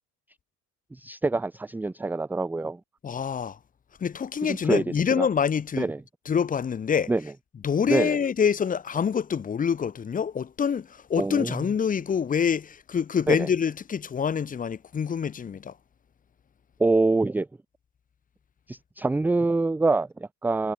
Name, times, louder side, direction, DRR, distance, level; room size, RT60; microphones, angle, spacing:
voice 1, 0.9-2.8 4.4-4.8 5.1-5.3 5.8-6.0 7.1-7.2 7.9-8.2 11.2-11.7 13.3-13.5 16.8-17.5 18.7-20.7, right 3 dB, 5° right, 0.6 m, -25 dB
voice 2, 3.0-3.6 4.0-5.9 6.3-7.1 7.6-15.7, left 7 dB, 25° left, 4.7 m, -26 dB
cardioid pair, 170°, 33 cm